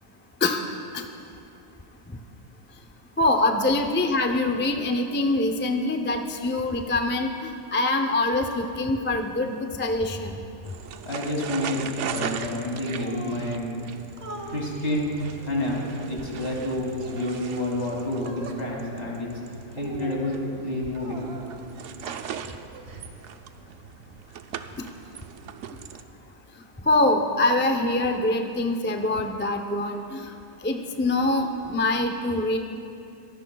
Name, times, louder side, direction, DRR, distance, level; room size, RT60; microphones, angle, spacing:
voice 1, 3.2-10.3 26.9-30.3 30.6-32.6, left 2 dB, 15° left, 4 dB, 0.4 m, -24 dB
sound 1, 10.6-26.0, right 8 dB, 75° right, 1.0 m, -39 dB
voice 2, 11.0-13.8 14.5-15.1 15.4-15.8 16.1-19.3 19.7-21.3, left 1 dB, 55° left, -3 dB, 3.1 m, -29 dB
sound 2, 13.0-13.5 14.2-14.6 15.4-16.2 17.0-17.4 18.2-18.6 19.7-20.3 21.0-21.7 22.3-23.1, right 1 dB, 60° right, 1.4 m, -40 dB
24.0 x 17.0 x 2.3 m, 2.7 s
omnidirectional pair, 1.2 m